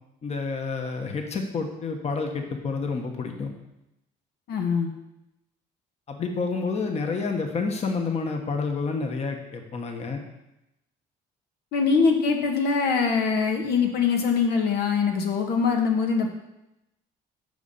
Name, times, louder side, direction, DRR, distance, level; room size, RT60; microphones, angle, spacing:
voice 1, 0.2-3.5 6.1-10.2, left 4 dB, 40° left, 4 dB, 1.4 m, -29 dB
voice 2, 4.5-4.9 11.7-16.3, left 5 dB, 75° left, 2 dB, 1.4 m, -23 dB
8.5 x 5.4 x 6.9 m, 0.90 s
cardioid pair, 110°, 17 cm